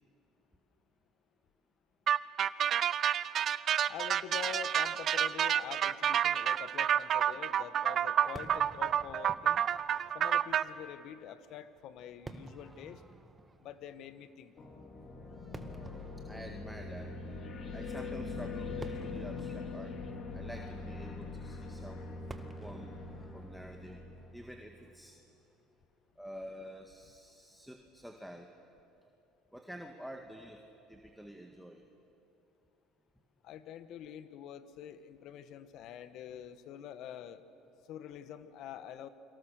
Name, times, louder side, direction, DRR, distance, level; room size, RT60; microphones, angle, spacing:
sound 1, 2.1-10.6, right 9 dB, 50° right, 0.7 m, -29 dB
voice 1, 3.8-9.6 10.1-13.0 13.6-14.5 33.4-37.4 37.9-39.1, left 9 dB, 65° left, 12 dB, 1.4 m, -46 dB
Fireworks, 8.4-25.7, right 3 dB, 15° right, 1.6 m, -54 dB
sound 2, 14.6-24.8, left 3 dB, 45° left, 3.3 m, -42 dB
voice 2, 16.3-17.1 17.7-19.9 20.3-22.1 22.6-23.0 23.3-24.0 24.3-25.2 26.2-28.5 29.5-30.6 30.9-31.9, equal, ahead, 3 dB, 1.8 m, -48 dB
29.5 x 23.5 x 6.7 m, 2.8 s
supercardioid pair, 90°, 0 cm